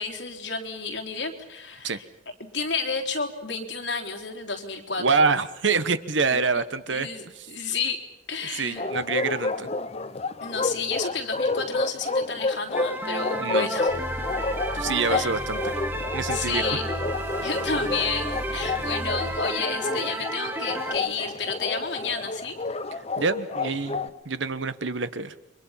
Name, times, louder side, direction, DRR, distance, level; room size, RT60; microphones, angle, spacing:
voice 1, 0.0-2.0 2.5-5.0 6.3-6.5 6.9-8.0 8.3-8.9 10.4-13.9 15.1-15.3 16.3-16.8 17.4-22.6, left 4 dB, 60° left, 3 dB, 3.4 m, -31 dB
voice 2, 5.0-7.1 7.4-7.5 8.5-9.7 13.4-13.7 14.7-15.7 16.1-16.8 23.2-25.3, right 4 dB, 70° right, 13 dB, 1.2 m, -26 dB
Bark, 8.8-24.1, left 3 dB, 35° left, 1.0 m, -30 dB
sound 1, 12.7-21.0, right 1 dB, 10° right, 1.6 m, -32 dB
sound 2, 13.9-19.4, equal, 15° left, 3.1 m, -37 dB
29.5 x 24.0 x 5.7 m, 0.90 s
head